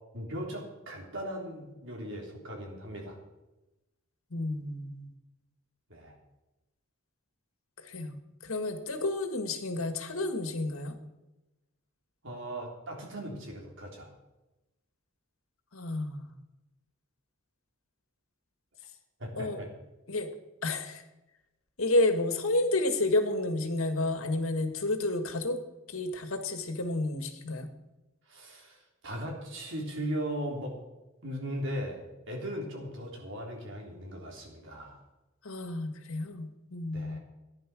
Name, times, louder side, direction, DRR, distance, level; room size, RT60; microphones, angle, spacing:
voice 1, 0.1-3.2 5.9-6.1 12.2-14.1 19.2-19.7 28.3-30.8 31.2-35.0 36.9-37.2, equal, 60° right, -1 dB, 3.6 m, -38 dB
voice 2, 4.3-5.1 7.8-11.0 15.7-16.3 19.4-19.6 20.1-20.3 20.6-21.0 21.8-25.6 25.9-27.7 35.4-37.2, left 2 dB, 85° left, 7 dB, 1.9 m, -30 dB
15.5 x 10.5 x 6.2 m, 1.0 s
head